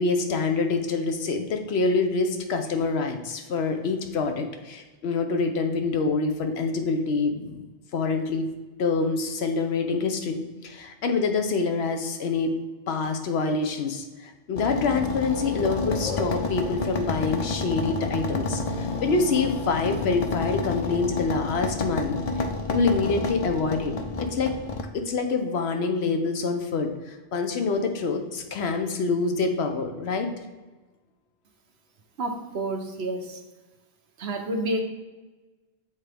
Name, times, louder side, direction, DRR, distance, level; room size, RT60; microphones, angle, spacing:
voice 1, 0.0-7.6 7.9-8.5 8.8-12.5 12.9-22.2 22.7-23.9 24.2-24.6 24.9-30.3, left 4 dB, 65° left, 6 dB, 1.0 m, -26 dB
sound 1, 14.5-24.8, left 3 dB, 50° left, 0.4 m, -29 dB
voice 2, 32.2-33.4 34.2-34.8, right 1 dB, 65° right, 4 dB, 1.1 m, -29 dB
8.1 x 3.7 x 3.4 m, 1.2 s
omnidirectional pair, 1.2 m